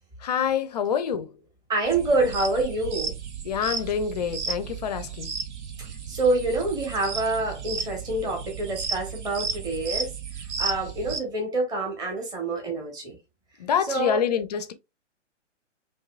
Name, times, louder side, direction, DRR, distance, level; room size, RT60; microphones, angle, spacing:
voice 1, 0.2-1.3 3.4-5.3 13.6-14.7, left 7 dB, 35° left, 0.4 m, -26 dB
voice 2, 1.7-3.1 6.1-10.1 10.6-13.2 13.9-14.2, right 2 dB, 10° right, 0.9 m, -26 dB
sound 1, 1.8-11.2, right 6 dB, 65° right, 0.8 m, -34 dB
4.6 x 2.7 x 2.3 m
figure-of-eight pair, 125°, 37 cm